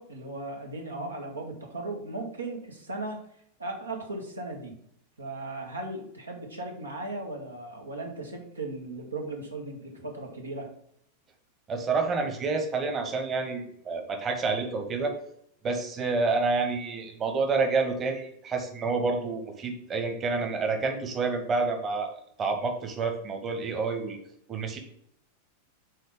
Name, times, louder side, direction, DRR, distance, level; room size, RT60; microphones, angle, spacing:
voice 1, 0.0-3.2 3.6-4.7 5.2-10.7, right 2 dB, 75° right, 1 dB, 1.6 m, -37 dB
voice 2, 11.7-15.1 15.6-22.1 22.4-24.2 24.5-24.8, right 4 dB, 25° right, 4 dB, 1.3 m, -28 dB
6.4 x 4.1 x 5.1 m, 0.69 s
figure-of-eight pair, 90°, 0 cm